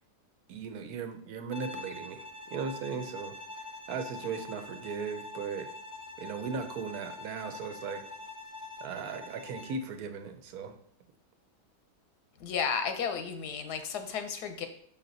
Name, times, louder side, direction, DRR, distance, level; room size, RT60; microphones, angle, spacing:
voice 1, 0.5-3.4 3.9-5.7 6.2-8.0 8.8-10.8, right 5 dB, 75° right, 8 dB, 1.2 m, -37 dB
Bowed string instrument, 1.5-9.9, left 3 dB, 30° left, 0.3 m, -45 dB
voice 2, 12.4-14.7, left 6 dB, 85° left, 7 dB, 1.4 m, -33 dB
5.9 x 5.6 x 3.9 m, 0.64 s
omnidirectional pair, 1.7 m